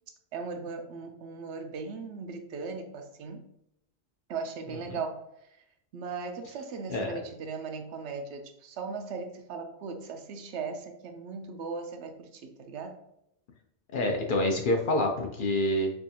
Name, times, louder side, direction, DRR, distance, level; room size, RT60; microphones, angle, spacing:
voice 1, 0.3-3.4 4.3-5.2 5.9-13.0, right 4 dB, 75° right, 5 dB, 0.8 m, -38 dB
voice 2, 6.9-7.2 13.9-15.9, left 1 dB, 60° left, 2 dB, 0.6 m, -27 dB
4.6 x 2.4 x 2.7 m, 0.80 s
omnidirectional pair, 1.2 m